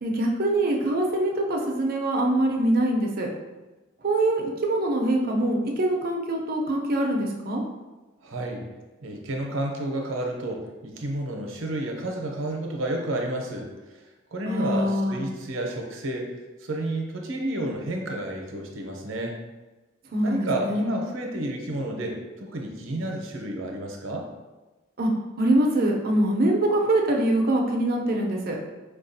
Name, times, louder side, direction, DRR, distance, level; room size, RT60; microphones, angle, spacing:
voice 1, 0.0-3.3 4.0-7.6 14.5-15.2 20.1-20.9 25.0-25.1 25.4-28.6, right 1 dB, 50° right, 0 dB, 0.5 m, -24 dB
voice 2, 8.2-8.6 9.0-13.7 14.3-16.3 16.6-19.3 20.2-24.3, right 1 dB, 85° right, 1 dB, 0.6 m, -30 dB
4.8 x 2.3 x 2.6 m, 1.2 s
head